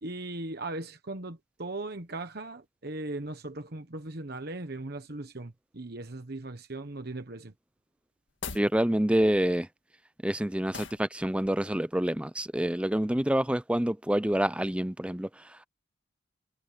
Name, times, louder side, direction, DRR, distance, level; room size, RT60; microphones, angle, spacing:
voice 1, 0.0-7.5, right 2 dB, 50° right, 1.2 m, -38 dB
sound 1, 8.3-8.7 10.7-11.1, left 5 dB, 65° left, 2.0 m, -39 dB
voice 2, 8.5-9.7 10.2-15.6, right 1 dB, 5° right, 0.5 m, -27 dB
head